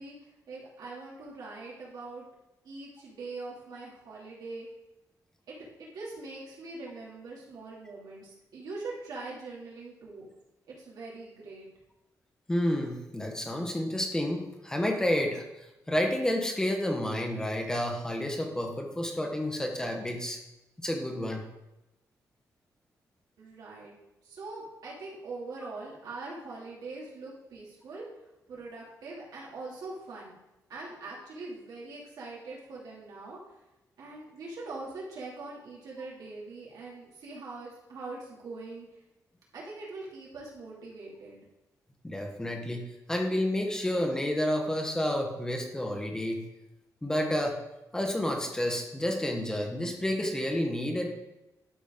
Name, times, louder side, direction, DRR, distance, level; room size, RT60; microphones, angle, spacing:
voice 1, 0.0-2.3 2.6-4.7 5.5-10.3 10.7-11.7 23.4-23.9 24.2-28.1 28.5-30.3 30.7-33.4 34.0-38.9 39.5-41.5, right 3 dB, 85° right, -5 dB, 2.7 m, -42 dB
voice 2, 12.5-15.4 15.9-20.4 20.8-21.4 42.0-46.4 47.0-47.6 47.9-51.1, left 1 dB, 10° left, 2 dB, 1.0 m, -30 dB
11.5 x 5.0 x 3.7 m, 0.95 s
wide cardioid pair, 170°, 7 cm